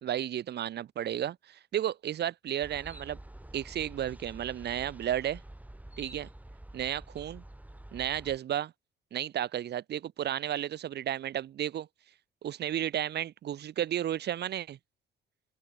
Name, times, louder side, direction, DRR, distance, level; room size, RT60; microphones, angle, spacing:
voice 1, 0.0-3.2 3.5-5.4 6.0-6.3 6.7-7.4 7.9-8.7 9.1-11.9 12.4-14.8, right 11 dB, 55° right, 0.7 m, -33 dB
sound 1, 2.6-8.4, right 1 dB, 10° right, 2.8 m, -48 dB
open air
cardioid pair, 90°, 20 cm